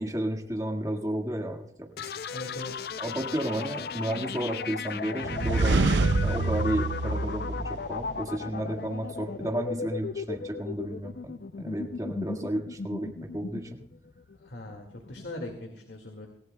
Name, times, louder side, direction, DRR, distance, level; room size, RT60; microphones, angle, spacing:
voice 1, 0.0-2.1 3.0-5.8 6.2-13.8, right 1 dB, 20° right, 2 dB, 1.8 m, -32 dB
sound 1, 2.0-15.6, left 5 dB, 60° left, 0.5 m, -36 dB
voice 2, 2.3-2.9 14.3-16.3, left 2 dB, 80° left, 2 dB, 2.0 m, -40 dB
sound 2, 5.2-8.2, right 3 dB, 85° right, 0.6 m, -26 dB
26.5 x 15.5 x 2.2 m, 0.75 s
head